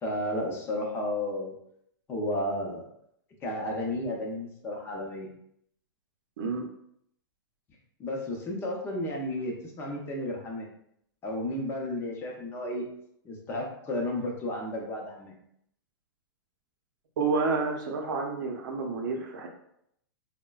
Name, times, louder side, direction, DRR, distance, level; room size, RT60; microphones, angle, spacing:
voice 1, 0.0-1.5 2.1-2.9 3.4-5.3 8.0-10.7 11.2-12.9 13.2-15.3, left 1 dB, 20° left, 0 dB, 0.6 m, -32 dB
voice 2, 6.4-6.7 17.2-19.5, right 4 dB, 65° right, 2 dB, 0.7 m, -29 dB
3.7 x 2.1 x 2.3 m, 0.73 s
hypercardioid pair, 140°, 12 cm